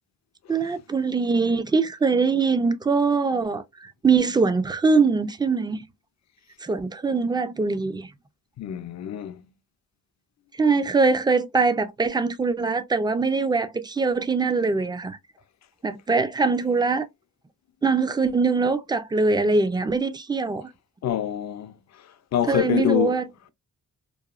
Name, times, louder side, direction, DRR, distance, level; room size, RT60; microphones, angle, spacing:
voice 1, 0.5-5.8 6.6-8.1 10.6-15.2 15.8-17.1 17.8-20.6 22.5-23.5, right 4 dB, 15° right, 0.3 m, -22 dB
voice 2, 8.6-9.4 21.0-21.7 22.3-23.2, left 11 dB, 50° left, 0.4 m, -25 dB
2.9 x 2.2 x 2.3 m
cardioid pair, 85°, 35 cm